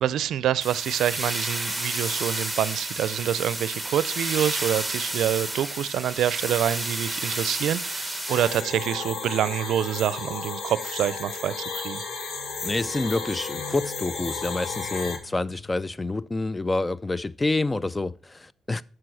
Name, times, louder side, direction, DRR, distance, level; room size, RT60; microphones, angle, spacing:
voice 1, 0.0-12.0, right 10 dB, 75° right, 0.5 m, -26 dB
sound 1, 0.6-8.6, right 1 dB, ahead, 1.5 m, -31 dB
sound 2, 8.3-15.2, left 5 dB, 65° left, 1.6 m, -33 dB
sound 3, 11.6-16.3, left 3 dB, 90° left, 4.1 m, -47 dB
voice 2, 12.6-18.8, left 2 dB, 20° left, 0.4 m, -28 dB
7.6 x 6.0 x 6.4 m
cardioid pair, 90°, 0 cm